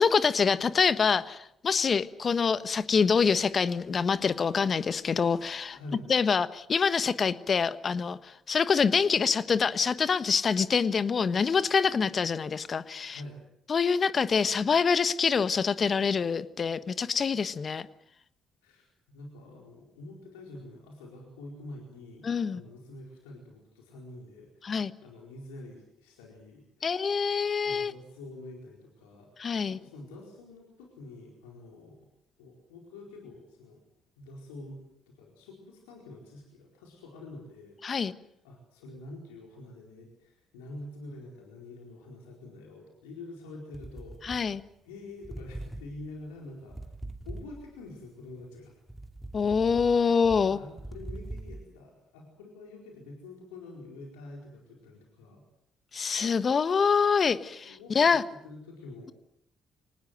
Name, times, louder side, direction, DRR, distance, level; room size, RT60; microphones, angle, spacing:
voice 1, 0.0-5.8 6.1-13.2 13.7-17.9 22.2-22.6 24.6-24.9 26.8-27.9 29.4-29.8 37.8-38.1 44.2-44.6 49.3-50.6 55.9-58.2, left 5 dB, 45° left, 14 dB, 1.3 m, -25 dB
voice 2, 5.7-6.1 13.1-13.4 18.6-32.0 32.4-33.8 34.2-34.8 35.2-37.8 38.2-44.4 44.8-47.0 47.2-48.8 50.0-55.4 57.6-58.2 58.4-59.1, left 2 dB, 85° left, -1 dB, 4.4 m, -47 dB
sound 1, 43.7-44.9 45.2-47.9 48.4-51.6, right 1 dB, 10° right, 2.5 m, -42 dB
25.0 x 19.5 x 7.9 m, 0.74 s
hypercardioid pair, 50°, 0 cm